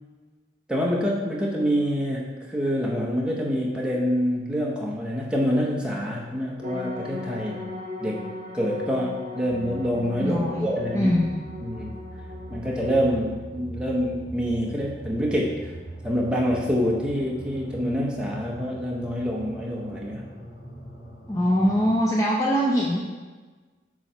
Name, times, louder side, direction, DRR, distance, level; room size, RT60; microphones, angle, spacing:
voice 1, 0.7-7.6 8.0-8.2 8.5-11.1 11.6-12.0 12.5-15.7 16.0-20.3, equal, 5° right, -3 dB, 0.9 m, -26 dB
sound 1, 6.6-13.2, left 2 dB, 45° right, 1.9 m, -38 dB
sound 2, 9.5-22.0, right 1 dB, 70° left, 2.1 m, -41 dB
voice 2, 10.2-11.4 21.3-23.0, equal, 15° left, -4 dB, 0.6 m, -23 dB
7.2 x 3.1 x 5.5 m, 1.3 s
head